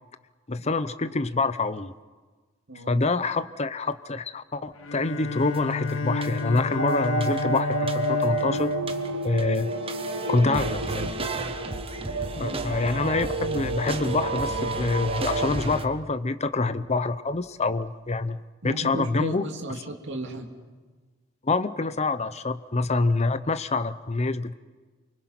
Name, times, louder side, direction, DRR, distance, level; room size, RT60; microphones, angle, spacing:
voice 1, 0.5-1.9 2.9-8.7 9.2-9.7 10.3-11.1 12.4-18.4 18.6-19.5 21.4-24.5, left 3 dB, 35° left, 12 dB, 0.8 m, -26 dB
voice 2, 2.7-3.0 12.3-12.6 18.6-20.5, right 1 dB, 60° right, 2 dB, 2.8 m, -35 dB
Bowed string instrument, 4.8-10.0, left 3 dB, 90° left, 1.5 m, -32 dB
sound 1, 5.5-5.7 6.2-6.7 7.0-8.4 8.7-15.9, right 2 dB, 30° right, 1.3 m, -33 dB
sound 2, 6.8-15.5, right 2 dB, 90° right, 1.2 m, -30 dB
29.0 x 24.0 x 6.0 m, 1.4 s
head